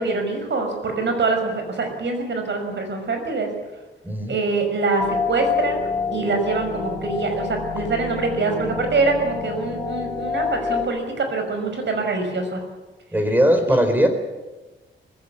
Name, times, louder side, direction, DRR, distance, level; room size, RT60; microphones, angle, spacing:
voice 1, 0.0-3.5 4.3-12.6 13.7-13.8, right 3 dB, 65° right, 5 dB, 5.8 m, -24 dB
voice 2, 4.0-4.4 13.1-14.1, equal, 10° right, 7 dB, 3.8 m, -19 dB
sound 1, 5.0-10.9, left 5 dB, 15° left, 2.2 m, -28 dB
20.0 x 16.0 x 10.0 m, 1.2 s
wide cardioid pair, 120°, 20 cm